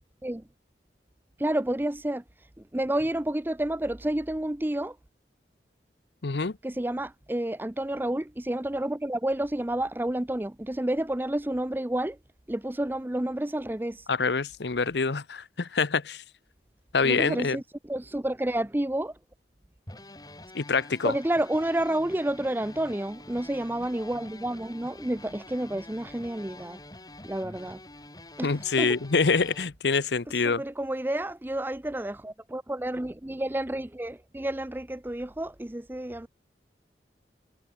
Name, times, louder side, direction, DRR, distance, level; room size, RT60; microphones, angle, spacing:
voice 1, 1.4-2.2 2.7-5.0 6.6-12.2 12.5-14.0 17.0-19.1 21.0-26.8 27.2-27.8 28.4-28.5 28.8-29.0 30.4-36.3, right 1 dB, 10° right, 0.5 m, -30 dB
voice 2, 6.2-6.5 14.1-16.2 16.9-17.6 20.5-21.1 28.4-30.6, left 4 dB, 75° left, 0.9 m, -26 dB
sound 1, 19.9-29.7, left 1 dB, 20° left, 4.5 m, -47 dB
head